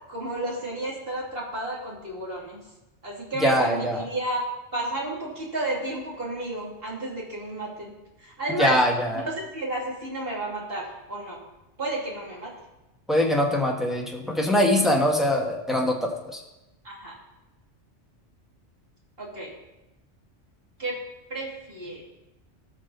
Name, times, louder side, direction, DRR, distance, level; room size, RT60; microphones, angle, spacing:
voice 1, 0.1-2.6 3.0-4.4 4.7-7.9 8.2-8.8 9.1-11.4 11.8-12.5 16.8-17.2 19.2-19.5 20.8-20.9 21.3-22.0, right 1 dB, 55° right, -4 dB, 3.0 m, -32 dB
voice 2, 3.3-4.0 8.5-9.2 13.1-16.4, equal, ahead, -1 dB, 1.6 m, -23 dB
18.5 x 6.3 x 4.0 m, 0.97 s
omnidirectional pair, 1.2 m